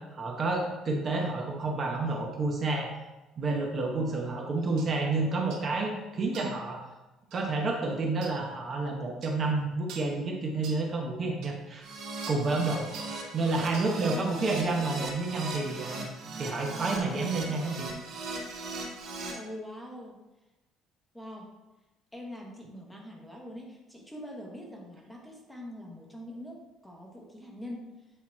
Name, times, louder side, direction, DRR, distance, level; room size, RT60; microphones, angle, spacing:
voice 1, 0.0-2.9 3.4-6.8 7.3-11.9 12.3-12.9 13.3-16.1 16.4-17.9, right 3 dB, 30° right, 1 dB, 0.8 m, -30 dB
sound 1, 4.8-4.9 5.5-5.7 6.3-6.6 7.3-7.5 8.2-8.4 9.2-9.4 9.9-10.2 10.6-10.9 11.4-11.5 12.2-12.5 12.9-13.2 13.7-14.0 14.5-14.6, right 4 dB, 75° right, 0.9 m, -45 dB
Keyboard (musical), 11.8-19.3, right 3 dB, 55° right, 2.0 m, -39 dB
voice 2, 14.1-14.9 19.3-20.2 21.1-21.5 22.1-27.9, left 1 dB, 5° left, -1 dB, 0.9 m, -43 dB
8.4 x 2.9 x 4.3 m, 1.1 s
cardioid pair, 165°, 0 cm